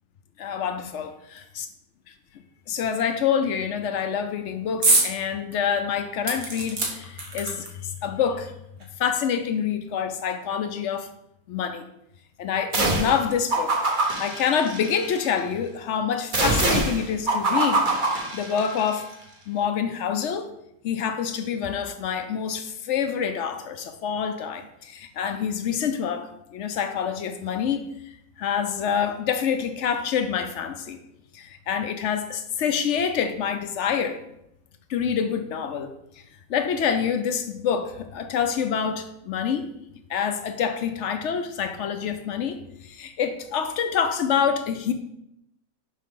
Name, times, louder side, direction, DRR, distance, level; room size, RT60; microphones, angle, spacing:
voice 1, 0.4-1.1 1.6-1.7 2.7-8.5 9.0-11.1 11.5-11.8 12.4-19.1 19.5-20.5 20.8-27.9 28.4-31.0 31.3-34.2 34.9-35.9 36.5-39.6 40.1-44.9, left 7 dB, 65° left, 8 dB, 0.8 m, -27 dB
sound 1, 4.8-5.1 5.5-5.6 6.2-7.9 8.8-8.9 9.2-9.3, right 3 dB, 70° right, 1.7 m, -24 dB
sound 2, 12.7-13.2 13.5-15.3 16.3-18.9, right 2 dB, 35° right, 1.1 m, -24 dB
6.4 x 5.3 x 3.8 m, 0.81 s
omnidirectional pair, 1.6 m